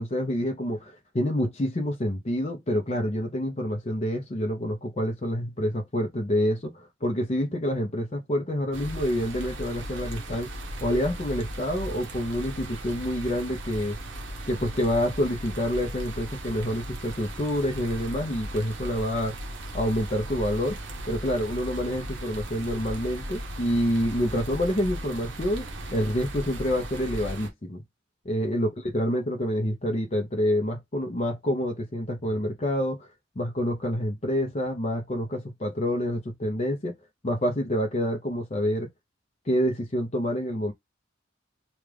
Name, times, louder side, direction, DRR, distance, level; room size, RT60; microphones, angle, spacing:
voice 1, 0.0-10.5 10.8-14.0 14.5-19.4 19.7-20.8 21.1-25.7 25.9-27.8 28.2-33.1 33.4-36.9 37.2-38.9 39.5-40.7, equal, 35° left, 0.7 m, -27 dB
sound 1, 8.7-27.5, right 1 dB, 70° right, 1.1 m, -37 dB
3.4 x 2.4 x 3.3 m
head